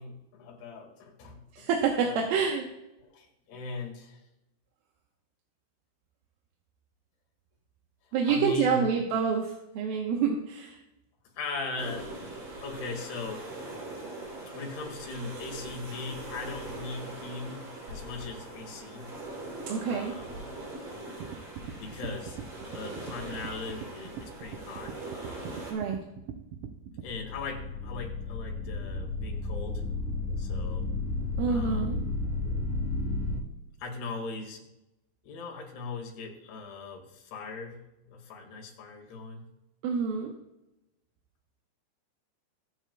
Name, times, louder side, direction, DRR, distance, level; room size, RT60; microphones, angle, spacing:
voice 1, 0.0-1.7 2.0-2.3 3.0-4.2 8.3-8.8 11.3-12.1 12.6-13.5 14.5-19.1 19.8-20.3 21.8-22.4 22.7-25.7 27.0-29.8 30.4-30.9 31.5-31.9 33.8-34.6 35.2-39.5, left 3 dB, 75° left, 1 dB, 3.9 m, -40 dB
voice 2, 1.5-2.6 8.1-10.8 19.7-20.1 25.7-26.0 31.4-32.0 39.8-40.3, right 6 dB, 75° right, 1 dB, 2.6 m, -27 dB
sound 1, 11.8-25.7, right 2 dB, 50° right, 4.2 m, -41 dB
sound 2, 21.2-27.1, right 8 dB, 90° right, 1.8 m, -42 dB
sound 3, 27.1-33.4, left 2 dB, 55° left, 3.8 m, -32 dB
23.0 x 7.9 x 2.2 m, 0.93 s
omnidirectional pair, 4.7 m